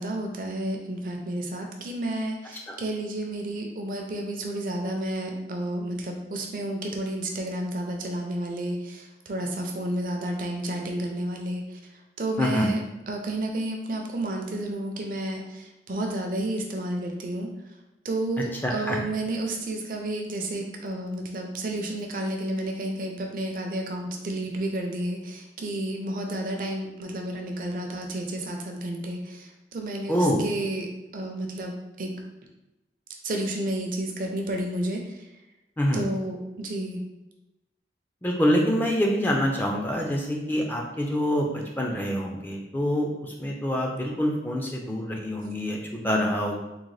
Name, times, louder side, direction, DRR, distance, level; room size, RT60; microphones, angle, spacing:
voice 1, 0.0-11.6 12.2-17.5 18.0-32.1 33.2-35.2 35.9-37.0, right 1 dB, 50° right, 2 dB, 0.5 m, -31 dB
voice 2, 12.4-12.7 18.6-19.0 30.1-30.4 35.8-36.0 38.2-46.6, equal, 10° left, 0 dB, 0.4 m, -26 dB
3.8 x 2.1 x 3.1 m, 0.96 s
head